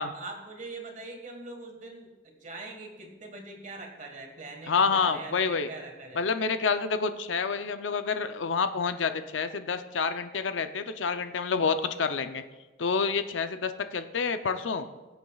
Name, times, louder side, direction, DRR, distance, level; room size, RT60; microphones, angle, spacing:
voice 1, 0.1-6.2, right 2 dB, 40° right, 3 dB, 1.6 m, -42 dB
voice 2, 4.7-5.7 6.1-12.4 12.8-14.9, left 5 dB, 75° left, 9 dB, 0.6 m, -28 dB
21.0 x 8.0 x 2.4 m, 1.2 s
head